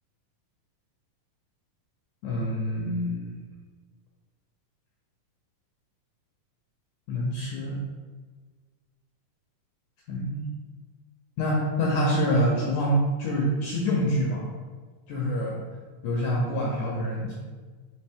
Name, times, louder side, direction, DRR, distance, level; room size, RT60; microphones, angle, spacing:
voice 1, 2.2-3.4 7.1-7.8 10.1-10.4 11.4-14.4 15.1-15.6 16.0-17.3, equal, 80° left, -3 dB, 1.8 m, -26 dB
5.2 x 2.8 x 3.4 m, 1.4 s
omnidirectional pair, 3.9 m